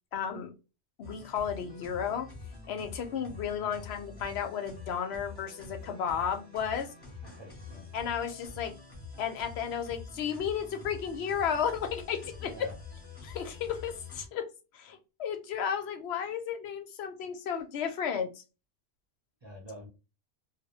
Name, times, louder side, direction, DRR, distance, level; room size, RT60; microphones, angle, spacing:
voice 1, 0.1-0.5 1.0-2.3 2.7-6.9 7.9-8.7 9.2-12.7 13.2-14.4 14.7-18.4, left 7 dB, 70° left, 6 dB, 0.8 m, -33 dB
sound 1, 1.0-14.3, left 4 dB, 25° left, 0.8 m, -46 dB
voice 2, 7.2-7.9 12.4-12.7 19.4-19.9, equal, 30° right, -1 dB, 0.6 m, -46 dB
2.2 x 2.1 x 2.8 m, 0.29 s
omnidirectional pair, 1.2 m